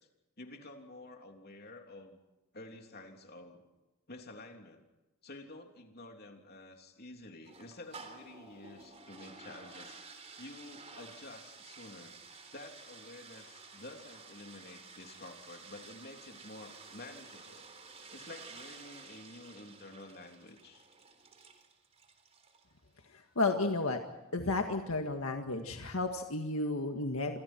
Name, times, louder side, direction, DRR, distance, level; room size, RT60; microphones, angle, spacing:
voice 1, 0.4-2.2 2.5-3.6 4.1-4.8 5.2-10.0 10.4-12.2 12.5-17.7 18.1-20.8, left 2 dB, 45° left, 3 dB, 3.3 m, -50 dB
sound 1, 7.4-22.7, right 4 dB, 30° right, 3.7 m, -52 dB
voice 2, 23.4-24.0 24.3-27.4, left 2 dB, 75° left, 4 dB, 1.8 m, -32 dB
28.0 x 25.0 x 4.6 m, 1.0 s
head